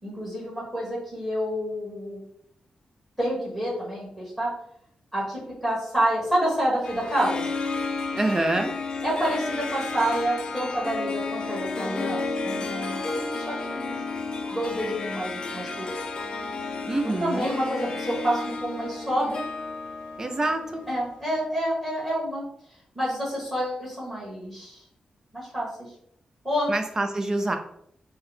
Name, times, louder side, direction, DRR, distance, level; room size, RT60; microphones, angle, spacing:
voice 1, 0.0-2.2 3.2-4.5 5.1-7.5 9.0-14.0 14.5-15.9 17.0-19.5 20.9-22.4 22.9-24.8 25.3-25.9 26.4-26.7, right 1 dB, 5° right, -6 dB, 1.5 m, -28 dB
Harp, 6.8-21.3, left 3 dB, 40° left, 0.4 m, -32 dB
voice 2, 8.1-8.7 16.9-17.5 20.2-20.8 26.7-27.6, right 2 dB, 25° right, 6 dB, 0.4 m, -26 dB
4.5 x 2.1 x 3.2 m, 0.68 s
wide cardioid pair, 160°, 2 cm